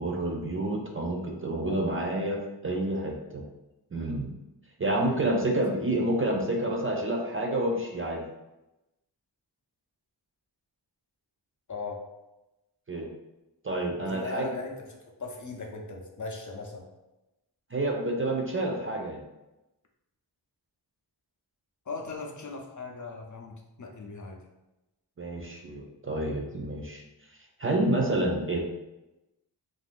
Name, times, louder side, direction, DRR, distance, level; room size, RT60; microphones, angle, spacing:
voice 1, 0.0-3.4 3.9-4.3 4.8-8.2 12.9-13.1 13.6-14.5 17.7-19.2 25.2-27.0 27.6-28.6, right 1 dB, 30° right, 0 dB, 0.4 m, -29 dB
voice 2, 1.6-2.0 5.0-5.2 11.7-12.0 14.0-16.9 21.9-24.4, left 3 dB, 45° left, 1 dB, 0.5 m, -38 dB
3.4 x 2.5 x 2.4 m, 0.98 s
wide cardioid pair, 80°, 43 cm